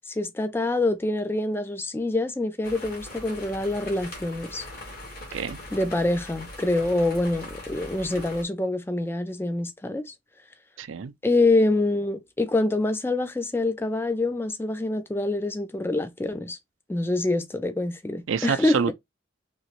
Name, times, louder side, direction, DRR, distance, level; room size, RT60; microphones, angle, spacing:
voice 1, 0.1-4.6 5.7-10.1 11.2-16.6 16.9-18.9, left 2 dB, 10° left, 0.3 m, -26 dB
sound 1, 2.6-8.4, left 1 dB, 50° left, 1.3 m, -41 dB
voice 2, 10.8-11.1 18.3-18.9, right 6 dB, 90° right, 0.4 m, -27 dB
3.0 x 2.8 x 2.9 m
head